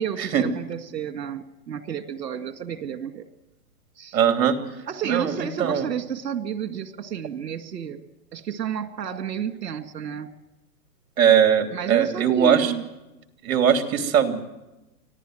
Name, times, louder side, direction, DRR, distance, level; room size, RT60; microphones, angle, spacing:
voice 1, 0.0-3.3 4.0-4.2 4.9-8.0 8.3-10.3 11.7-12.8, right 8 dB, 75° right, 9 dB, 2.1 m, -31 dB
voice 2, 4.1-4.6 5.0-5.9 11.2-12.7 13.4-14.4, right 8 dB, 55° right, 6 dB, 2.9 m, -20 dB
25.0 x 16.0 x 7.8 m, 1.0 s
hypercardioid pair, 150°, 49 cm